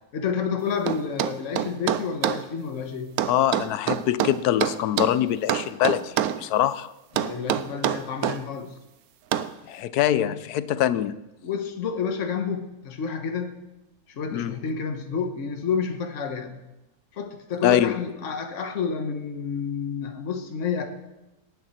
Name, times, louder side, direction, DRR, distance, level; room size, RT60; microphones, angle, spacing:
voice 1, 0.1-3.1 7.1-8.8 11.4-13.7 14.1-16.6 17.1-20.9, left 6 dB, 55° left, 5 dB, 1.5 m, -29 dB
sound 1, 0.9-2.4 3.2-5.2 5.5-6.4 7.2-8.4 9.3-9.5, right 11 dB, 80° right, 1.1 m, -25 dB
voice 2, 3.3-6.9 9.7-11.2 14.3-14.5 17.6-18.0, left 11 dB, 90° left, 15 dB, 1.2 m, -23 dB
18.0 x 9.6 x 4.3 m, 0.98 s
omnidirectional pair, 1.6 m